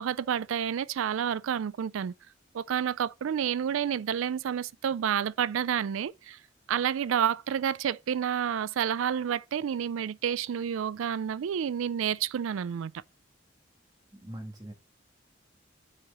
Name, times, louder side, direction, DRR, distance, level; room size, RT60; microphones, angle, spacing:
voice 1, 0.0-2.1 2.5-6.4 6.7-12.9, right 8 dB, 90° right, 0.3 m, -29 dB
voice 2, 14.1-14.7, right 1 dB, 20° right, 1.8 m, -42 dB
7.5 x 4.8 x 5.5 m
head